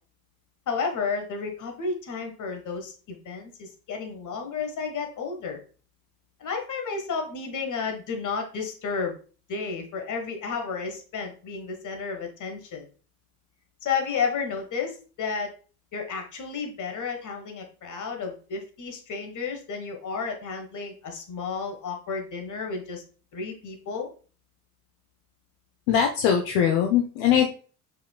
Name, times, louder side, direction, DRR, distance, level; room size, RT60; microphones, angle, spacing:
voice 1, 0.7-5.6 6.4-9.2 9.5-12.8 13.8-15.5 15.9-23.0 23.3-24.1, left 5 dB, 40° left, 4 dB, 1.4 m, -32 dB
voice 2, 25.9-27.5, left 8 dB, 60° left, 4 dB, 0.8 m, -21 dB
5.1 x 4.4 x 2.3 m, 0.39 s
hypercardioid pair, 65°, 48 cm